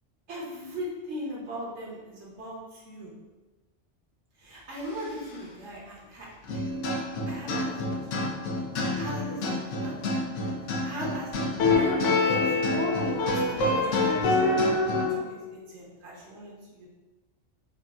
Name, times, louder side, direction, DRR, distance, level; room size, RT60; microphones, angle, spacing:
voice 1, 0.3-3.1 4.4-6.3 6.5-6.7 7.3-8.4 8.9-10.3 10.6-11.3 11.7-14.7 15.1-16.9, equal, 70° right, -4 dB, 1.2 m, -38 dB
sound 1, 6.4-15.2, left 2 dB, 90° left, 1.0 m, -26 dB
5.0 x 2.6 x 2.3 m, 1.2 s
omnidirectional pair, 1.2 m